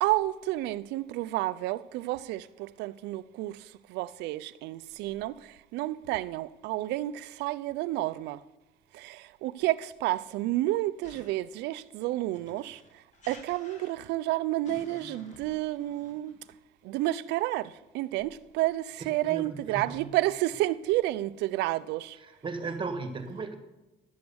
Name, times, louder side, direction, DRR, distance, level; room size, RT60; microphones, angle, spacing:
voice 1, 0.0-8.4 8.9-12.8 13.3-16.4 16.8-22.2, right 16 dB, 90° right, 0.5 m, -30 dB
sound 1, 11.0-11.5 12.3-14.2 14.6-16.5, left 1 dB, 45° left, 2.4 m, -52 dB
voice 2, 19.2-20.0 22.2-23.6, right 4 dB, 30° right, 1.6 m, -36 dB
12.0 x 7.9 x 6.9 m
cardioid pair, 110°, 17 cm